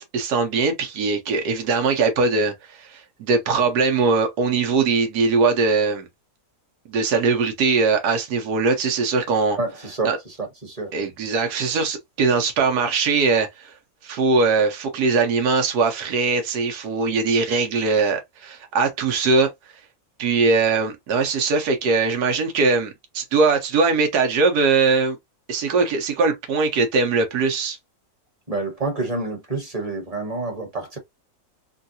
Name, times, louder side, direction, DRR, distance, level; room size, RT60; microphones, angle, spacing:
voice 1, 0.0-6.1 6.9-9.6 10.0-10.2 10.9-13.7 14.0-19.5 20.2-25.2 25.5-27.8, right 4 dB, 85° right, 1.4 m, -21 dB
voice 2, 9.6-10.9 28.5-31.0, right 3 dB, 25° right, 1.2 m, -28 dB
3.7 x 2.3 x 2.6 m
omnidirectional pair, 1.6 m